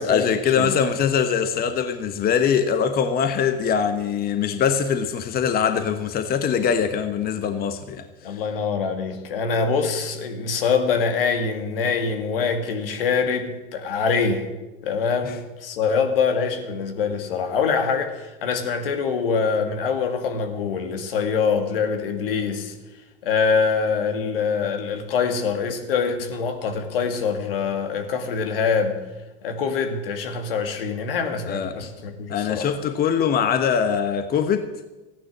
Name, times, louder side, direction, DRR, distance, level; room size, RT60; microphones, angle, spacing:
voice 1, 0.0-8.0 15.2-15.3 31.5-31.7 32.3-34.7, left 7 dB, 30° left, 1.2 m, -22 dB
voice 2, 8.2-14.5 14.8-22.7 23.2-29.0 29.4-32.7, left 5 dB, 75° left, 2.3 m, -24 dB
15.0 x 10.0 x 7.4 m
hypercardioid pair, 90°, 29 cm